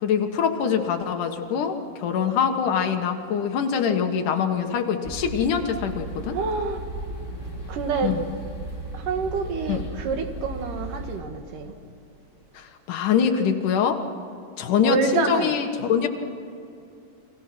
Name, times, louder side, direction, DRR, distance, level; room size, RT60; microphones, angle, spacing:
voice 1, 0.0-6.4 8.0-8.2 9.7-9.8 12.5-14.0 14.6-16.1, left 7 dB, 80° left, 4 dB, 3.0 m, -24 dB
sound 1, 5.0-11.2, right 2 dB, 5° left, 3.9 m, -35 dB
voice 2, 6.3-6.8 7.7-8.1 8.9-11.7 14.7-15.6, right 5 dB, 85° right, 5 dB, 3.4 m, -27 dB
30.0 x 23.0 x 6.1 m, 2.6 s
omnidirectional pair, 3.6 m